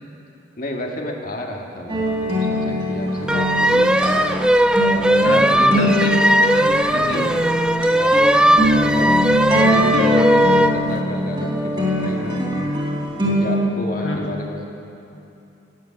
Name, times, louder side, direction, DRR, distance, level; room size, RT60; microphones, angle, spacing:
voice 1, 0.6-3.9 4.8-5.9 7.0-7.3 8.0-8.1 8.6-9.2 9.5-12.4 13.3-14.7, left 1 dB, 45° left, 1 dB, 1.8 m, -31 dB
sound 1, 1.9-13.6, equal, 25° right, 3.7 m, -22 dB
sound 2, 3.3-10.8, right 1 dB, 5° right, 0.3 m, -18 dB
voice 2, 5.2-7.3 14.0-14.3, left 2 dB, 70° left, -1 dB, 1.8 m, -28 dB
17.0 x 8.6 x 9.9 m, 2.9 s
head